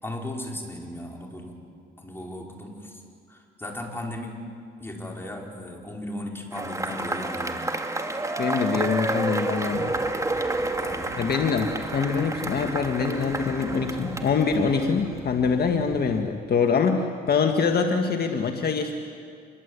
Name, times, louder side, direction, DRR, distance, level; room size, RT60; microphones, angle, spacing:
voice 1, 0.0-1.6 2.0-3.0 3.3-4.4 4.8-7.7 10.8-11.2, left 1 dB, 10° left, 0 dB, 5.1 m, -36 dB
Cheering / Applause / Crowd, 6.5-15.2, right 2 dB, 15° right, 2.2 m, -30 dB
voice 2, 8.4-10.0 11.2-18.9, left 5 dB, 50° left, 4 dB, 1.8 m, -24 dB
sound 1, 9.6-16.2, right 3 dB, 50° right, 4.3 m, -44 dB
26.5 x 22.0 x 8.3 m, 2.3 s
cardioid pair, 90°, 20 cm